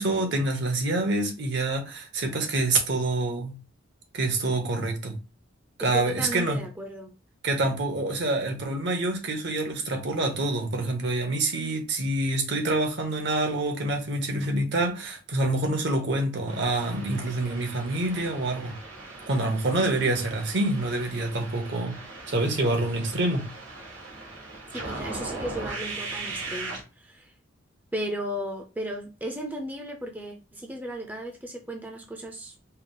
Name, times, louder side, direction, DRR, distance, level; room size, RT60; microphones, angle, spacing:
voice 1, 0.0-3.6 4.1-5.2 5.8-6.6 7.4-18.8 19.3-22.0 22.3-23.4, right 2 dB, 60° right, 1.0 m, -26 dB
voice 2, 5.8-7.1 24.7-27.3 27.9-32.5, right 1 dB, 10° right, 0.5 m, -35 dB
sound 1, 16.5-26.8, right 3 dB, 80° right, 1.4 m, -39 dB
4.5 x 2.0 x 3.8 m
head